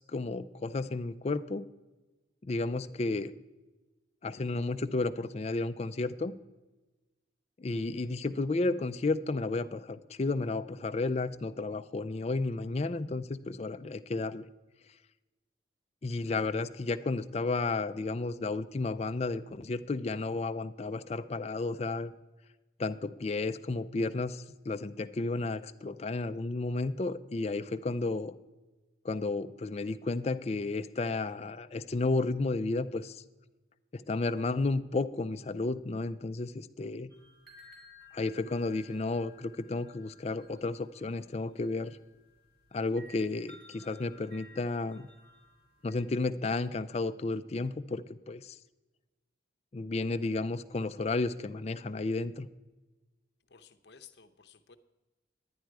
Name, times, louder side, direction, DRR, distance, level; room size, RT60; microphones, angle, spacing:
voice 1, 0.0-1.6 2.4-3.3 4.2-6.3 7.6-14.4 16.0-22.1 22.8-28.3 29.0-33.2 33.9-37.1 38.1-42.0 42.7-45.1 45.8-48.6 49.7-52.5, left 3 dB, 35° left, 11 dB, 0.4 m, -32 dB
sound 1, 37.1-46.0, left 2 dB, 55° right, 3.1 m, -57 dB
voice 2, 53.5-54.8, left 7 dB, 65° left, 8 dB, 0.7 m, -55 dB
10.5 x 10.5 x 4.7 m, 1.1 s
head